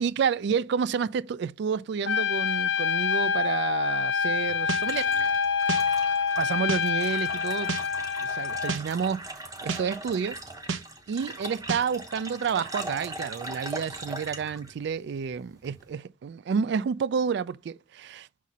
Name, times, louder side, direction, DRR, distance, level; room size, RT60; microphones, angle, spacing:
voice 1, 0.0-5.1 6.4-7.7 8.2-9.2 9.6-10.4 11.1-18.3, right 6 dB, 60° right, 0.3 m, -29 dB
Trumpet, 2.1-8.8, left 6 dB, 70° left, 0.6 m, -26 dB
sound 1, 4.2-15.9, right 2 dB, 20° right, 0.9 m, -40 dB
sound 2, 4.7-4.8 5.7-5.8 6.7-6.8 7.7-7.8 8.7-8.8 9.7-9.8 10.7-10.8 11.7-11.8, right 4 dB, 80° right, 0.7 m, -30 dB
6.2 x 4.1 x 4.1 m
head